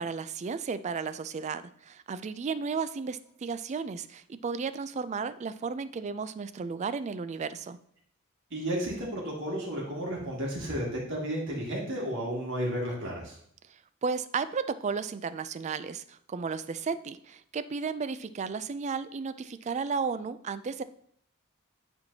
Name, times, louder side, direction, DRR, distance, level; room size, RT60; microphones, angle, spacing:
voice 1, 0.0-7.8 14.0-20.8, right 5 dB, 35° right, 13 dB, 0.3 m, -34 dB
voice 2, 8.5-13.4, equal, 60° right, -3 dB, 2.4 m, -32 dB
10.5 x 4.4 x 2.8 m, 0.63 s
head